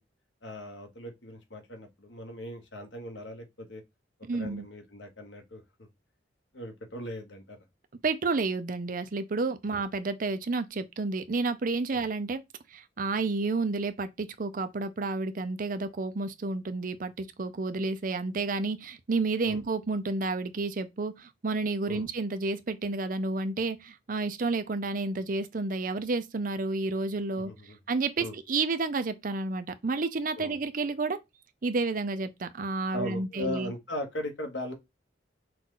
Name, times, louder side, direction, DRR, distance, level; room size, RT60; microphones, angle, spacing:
voice 1, 0.4-3.8 4.3-5.9 6.5-7.6 11.9-12.0 19.4-19.6 21.9-22.1 27.5-27.8 28.2-28.3 30.4-30.5 32.9-34.7, left 1 dB, 85° left, 1.2 m, -39 dB
voice 2, 4.3-4.7 8.0-12.4 12.7-27.5 27.9-31.2 31.6-33.7, right 3 dB, 50° right, 0.5 m, -30 dB
5.8 x 2.4 x 3.8 m
head